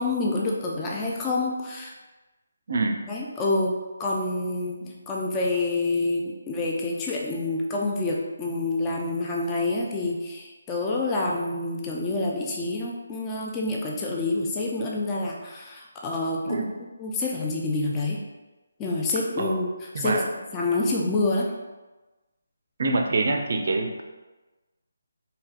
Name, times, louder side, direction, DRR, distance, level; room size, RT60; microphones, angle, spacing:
voice 1, 0.0-1.9 3.1-4.8 5.1-16.7 17.0-18.2 18.8-20.2 20.5-21.5, left 2 dB, 15° left, -3 dB, 0.3 m, -27 dB
voice 2, 2.7-3.0 4.8-4.9 16.5-16.7 19.4-19.6 19.9-20.3 22.8-24.0, right 3 dB, 50° right, 3 dB, 0.4 m, -25 dB
3.2 x 2.8 x 2.3 m, 1.2 s
figure-of-eight pair, 150°, 0 cm